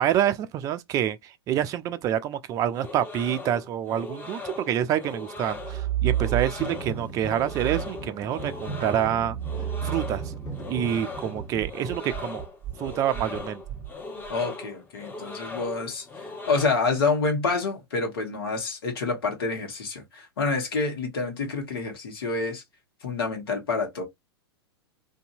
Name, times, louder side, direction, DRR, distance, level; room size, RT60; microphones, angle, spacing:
voice 1, 0.0-9.4 9.8-10.3 10.7-12.4 12.8-13.6, right 10 dB, 25° right, 0.3 m, -27 dB
sound 1, 2.7-16.7, left 3 dB, 15° left, 0.9 m, -39 dB
sound 2, 5.5-6.9 7.4-14.4, right 12 dB, 10° right, 1.1 m, -33 dB
sound 3, 6.5-11.6, right 2 dB, 35° left, 1.4 m, -39 dB
voice 2, 14.3-16.0 16.5-22.6 23.0-24.0, left 4 dB, 65° left, 1.4 m, -27 dB
2.6 x 2.6 x 2.6 m
figure-of-eight pair, 95°, 14 cm